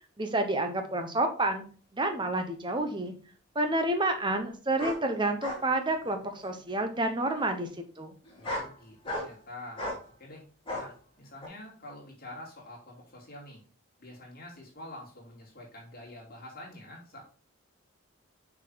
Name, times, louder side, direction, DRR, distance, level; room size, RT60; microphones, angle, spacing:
voice 1, 0.2-1.6 1.9-3.1 3.5-7.7 8.0-8.1, right 2 dB, 20° right, 6 dB, 0.9 m, -29 dB
sound 1, 2.7-2.8 4.8-5.0 5.4-5.6 6.0-6.5 7.3-7.4 8.2-8.7 9.0-9.4 9.8-10.0 10.7-10.9 11.4-11.5, left 1 dB, 25° left, 2.5 m, -35 dB
voice 2, 8.4-9.9 10.2-10.4 10.8-13.6 14.0-17.2, left 1 dB, 40° left, -3 dB, 2.9 m, -46 dB
6.6 x 4.9 x 4.0 m, 0.40 s
head